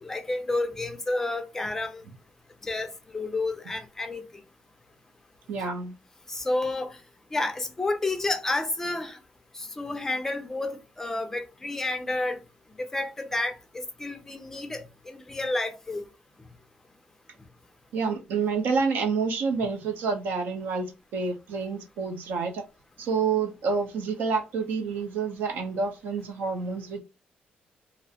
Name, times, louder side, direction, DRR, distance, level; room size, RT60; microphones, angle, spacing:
voice 1, 0.0-2.0 2.6-4.2 6.3-7.0 7.3-9.2 9.5-12.4 12.8-16.0, left 2 dB, 15° left, 0.4 m, -30 dB
voice 2, 5.5-6.0 17.9-22.6 23.0-27.0, right 5 dB, 80° right, 0.6 m, -28 dB
2.5 x 2.0 x 2.7 m
cardioid pair, 165°, 3 cm